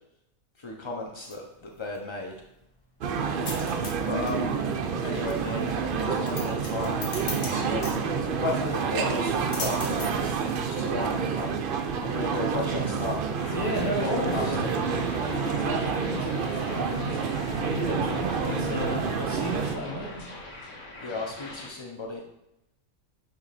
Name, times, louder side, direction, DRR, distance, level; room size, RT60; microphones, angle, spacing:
voice 1, 0.6-2.3 4.0-4.5 5.0-5.6 6.0-7.0 7.4-7.9 8.3-10.4 10.7-11.6 12.0-13.2 13.5-13.6 14.0-14.7 21.0-22.2, left 2 dB, 45° left, 0 dB, 0.4 m, -34 dB
sound 1, 1.0-15.8, left 3 dB, 80° left, 1.8 m, -43 dB
sound 2, 3.0-19.8, right 6 dB, 65° right, 0.5 m, -28 dB
sound 3, 13.3-21.7, left 2 dB, 60° left, 1.9 m, -41 dB
voice 2, 13.5-14.7 15.1-20.3, left 1 dB, 15° left, -3 dB, 1.4 m, -33 dB
9.0 x 3.4 x 4.1 m, 0.86 s
omnidirectional pair, 1.5 m